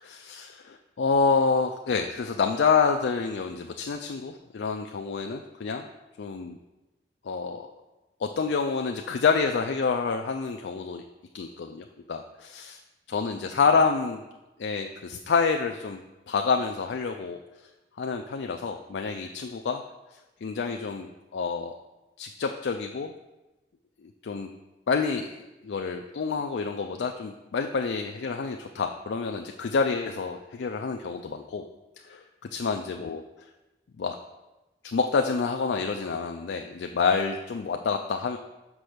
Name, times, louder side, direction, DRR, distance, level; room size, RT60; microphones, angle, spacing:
voice 1, 0.0-5.9 6.2-6.6 7.2-7.7 8.2-11.0 11.3-12.8 13.1-14.2 14.6-16.0 16.3-17.4 18.0-19.8 20.4-21.8 22.2-23.1 24.0-24.5 24.9-31.7 32.0-32.2 32.5-33.2 34.0-34.2 34.8-38.4, left 5 dB, 80° left, 4 dB, 0.4 m, -28 dB
6.1 x 5.2 x 5.0 m, 1.0 s
head